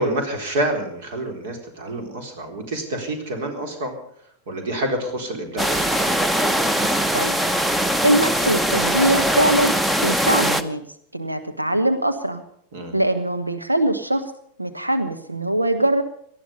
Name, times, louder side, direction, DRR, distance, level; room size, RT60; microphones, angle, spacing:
voice 1, 0.0-3.9 4.5-5.9 12.7-13.0, right 1 dB, 55° right, 5 dB, 3.9 m, -27 dB
sound 1, 5.6-10.6, equal, 5° right, 0.9 m, -21 dB
voice 2, 8.0-9.7 10.0-10.8 11.1-12.4 12.9-14.2 14.6-16.0, right 1 dB, 85° right, 9 dB, 1.1 m, -22 dB
19.0 x 13.0 x 5.3 m, 0.67 s
figure-of-eight pair, 90°, 0 cm